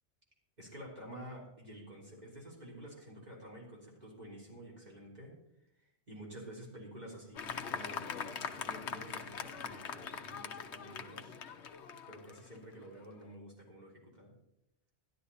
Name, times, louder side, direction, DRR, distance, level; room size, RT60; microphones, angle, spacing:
voice 1, 0.6-5.4 5.8-11.3 12.1-14.3, right 1 dB, 35° right, -4 dB, 3.8 m, -50 dB
Fireworks, 7.3-13.1, left 6 dB, 70° left, 1.2 m, -42 dB
13.0 x 11.5 x 4.2 m, 0.82 s
omnidirectional pair, 1.2 m